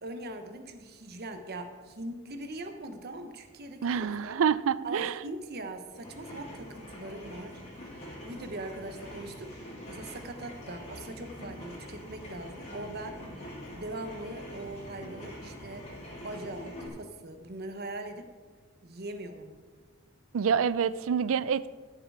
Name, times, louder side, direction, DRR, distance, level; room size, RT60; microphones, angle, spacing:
voice 1, 0.0-4.4 4.8-15.9 16.2-18.3 18.8-19.6, right 2 dB, 50° right, 7 dB, 1.1 m, -41 dB
voice 2, 3.8-5.2 20.3-21.7, right 7 dB, 70° right, 17 dB, 0.4 m, -27 dB
sound 1, 5.9-16.9, left 1 dB, 35° left, 3.4 m, -44 dB
14.0 x 6.9 x 4.9 m, 1.4 s
head